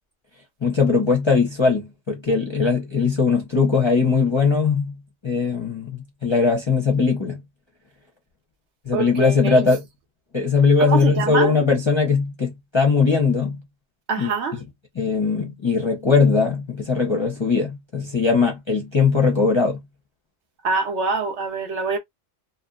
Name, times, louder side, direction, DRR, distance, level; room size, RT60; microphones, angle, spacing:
voice 1, 0.6-7.4 8.9-9.8 10.3-13.6 14.2-14.3 15.0-19.8, left 4 dB, 30° left, 0.6 m, -20 dB
voice 2, 8.9-9.6 10.8-11.5 14.1-14.6 20.6-22.0, right 4 dB, 65° right, 0.9 m, -24 dB
2.7 x 2.2 x 2.3 m
omnidirectional pair, 1.3 m